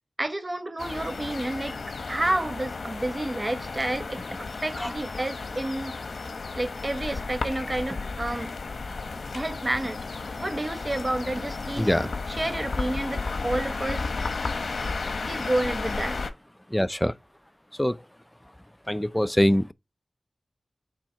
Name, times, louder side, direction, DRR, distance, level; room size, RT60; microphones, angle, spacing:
voice 1, 0.2-1.8 2.1-5.9 6.5-8.5 9.3-10.0 10.4-11.9 12.4-14.1 15.3-16.2, right 1 dB, 30° right, 1.1 m, -30 dB
sound 1, 0.8-16.3, left 4 dB, 90° left, 0.8 m, -33 dB
voice 2, 11.8-12.1 16.7-17.1 17.7-18.1 18.9-19.7, equal, 10° left, 0.4 m, -24 dB
7.4 x 3.6 x 4.5 m
wide cardioid pair, 65°, 0 cm